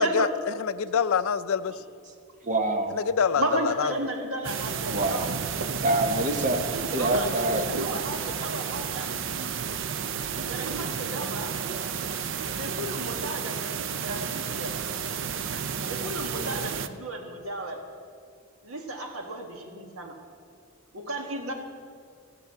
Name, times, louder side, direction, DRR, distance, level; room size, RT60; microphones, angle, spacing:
voice 1, 0.0-1.8 2.9-3.9, left 6 dB, 70° left, 13 dB, 0.4 m, -26 dB
voice 2, 2.4-3.0 4.9-7.7, right 1 dB, 35° right, 4 dB, 1.1 m, -27 dB
voice 3, 3.4-5.3 6.7-9.1 10.4-11.5 12.5-14.7 15.8-17.8 18.6-20.1 20.9-21.5, right 1 dB, 70° right, 3 dB, 1.6 m, -33 dB
sound 1, 4.4-16.9, right 6 dB, 55° right, 0.5 m, -32 dB
14.5 x 6.7 x 7.5 m, 2.2 s
head